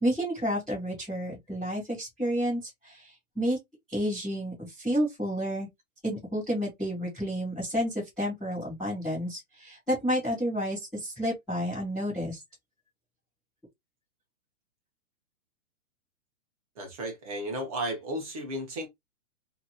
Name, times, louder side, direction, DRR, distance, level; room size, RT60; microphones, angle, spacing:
voice 1, 0.0-3.6 3.9-5.7 6.0-12.4, equal, ahead, 0.5 m, -30 dB
voice 2, 16.8-18.9, right 1 dB, 25° right, 0.8 m, -34 dB
2.8 x 2.7 x 2.3 m
hypercardioid pair, 170°, 42 cm